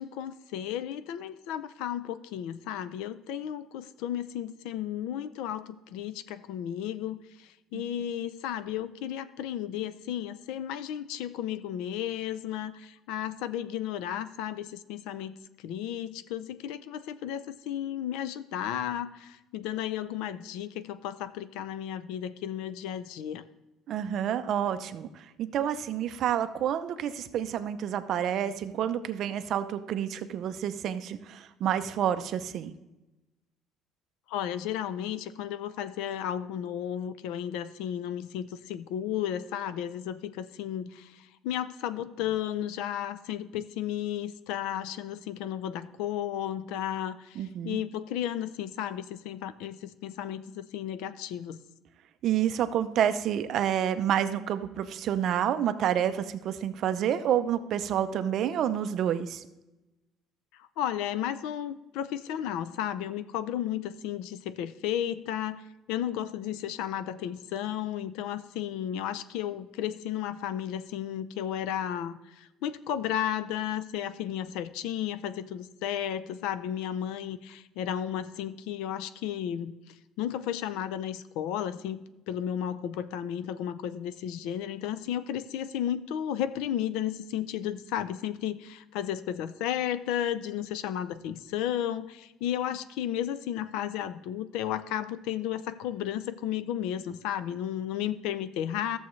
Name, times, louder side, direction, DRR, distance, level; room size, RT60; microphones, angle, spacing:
voice 1, 0.0-23.4 34.3-51.6 60.6-79.8 80.2-82.0 82.3-99.0, left 10 dB, 80° left, 14 dB, 0.5 m, -33 dB
voice 2, 23.9-32.7 47.4-47.8 52.2-59.5, right 10 dB, 45° right, 10 dB, 0.5 m, -29 dB
14.0 x 7.0 x 3.2 m, 1.0 s
cardioid pair, 160°, 0 cm